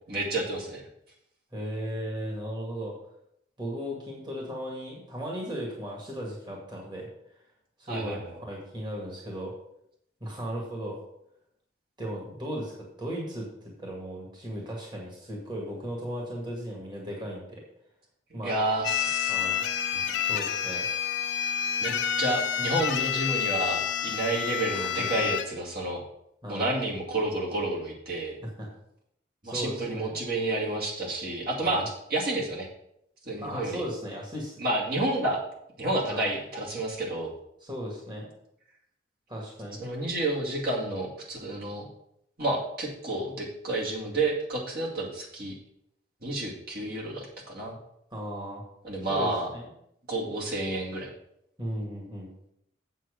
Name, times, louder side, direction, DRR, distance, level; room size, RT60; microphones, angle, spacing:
voice 1, 0.1-0.8 7.9-8.4 18.4-19.3 19.9-20.0 21.8-26.0 26.5-28.4 29.4-32.7 33.2-33.8 34.6-35.4 35.8-37.3 39.8-41.9 42.4-45.5 46.2-47.8 48.8-49.5 50.1-51.1, right 2 dB, 50° right, -3 dB, 2.3 m, -30 dB
voice 2, 1.5-2.9 3.6-7.1 7.8-9.5 10.2-11.0 12.0-12.7 13.0-17.6 18.3-18.6 19.3-19.6 20.2-20.8 24.7-25.2 26.4-26.7 28.6-28.7 29.4-30.1 31.6-31.8 33.4-34.5 36.1-36.4 37.6-38.3 39.3-39.8 48.1-48.6 49.1-49.7 51.6-52.3, equal, 25° right, -2 dB, 2.0 m, -36 dB
sound 1, 18.8-25.5, left 9 dB, 70° left, 0.9 m, -29 dB
7.7 x 7.6 x 5.1 m, 0.76 s
head